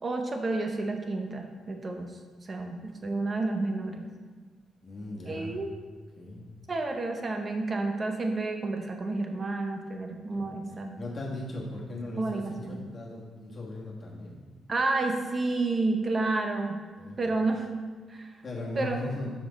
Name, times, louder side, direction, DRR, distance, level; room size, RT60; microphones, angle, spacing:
voice 1, 0.0-2.1 2.4-4.1 5.2-5.7 6.7-11.0 12.2-12.8 14.7-16.8 17.2-17.7 18.1-18.3 18.8-19.1, right 3 dB, 30° right, 4 dB, 0.6 m, -30 dB
voice 2, 4.8-5.6 6.2-6.4 10.3-10.6 11.0-12.4 12.7-14.4 17.0-17.2 18.4-19.3, left 2 dB, 35° left, -4 dB, 1.4 m, -38 dB
6.0 x 5.1 x 4.0 m, 1.5 s
cardioid pair, 130°, 0 cm